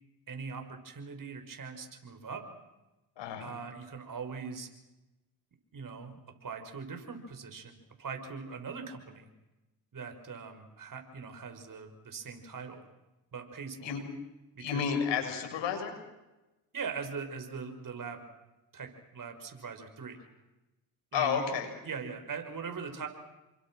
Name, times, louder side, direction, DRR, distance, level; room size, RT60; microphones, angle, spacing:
voice 1, 0.3-2.5 3.4-4.7 5.7-9.3 9.9-12.8 13.3-14.0 14.5-14.8 16.7-18.2 18.7-20.2 21.1-21.4 21.8-23.1, right 5 dB, 45° right, 5 dB, 6.3 m, -41 dB
voice 2, 3.2-3.5 13.8-14.0 14.6-15.9 21.1-21.7, left 7 dB, 75° left, 4 dB, 7.3 m, -31 dB
29.0 x 24.0 x 6.5 m, 1.0 s
supercardioid pair, 65°, 44 cm